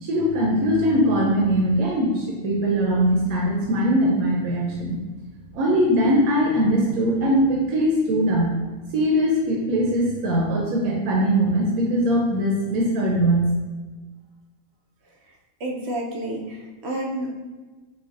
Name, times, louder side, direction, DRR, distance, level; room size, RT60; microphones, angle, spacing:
voice 1, 0.0-5.0 5.5-8.5 8.9-13.5, equal, 85° right, -2 dB, 1.0 m, -21 dB
voice 2, 15.6-17.4, right 1 dB, 65° right, 0 dB, 0.7 m, -30 dB
4.0 x 2.7 x 2.4 m, 1.3 s
omnidirectional pair, 1.5 m